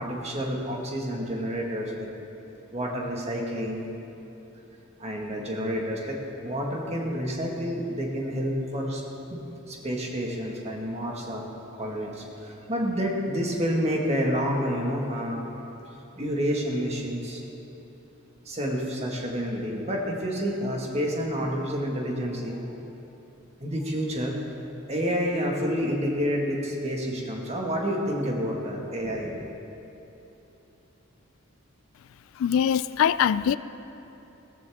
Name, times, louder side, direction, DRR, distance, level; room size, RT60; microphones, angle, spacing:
voice 1, 0.0-2.1 2.7-3.9 5.0-6.2 6.4-9.0 9.3-11.4 11.8-15.4 16.1-17.4 18.4-22.8 23.6-24.4 24.9-29.5, equal, 30° right, -1 dB, 1.7 m, -29 dB
voice 2, 32.3-33.6, left 8 dB, 70° left, 16 dB, 0.3 m, -22 dB
16.0 x 14.5 x 3.6 m, 3.0 s
head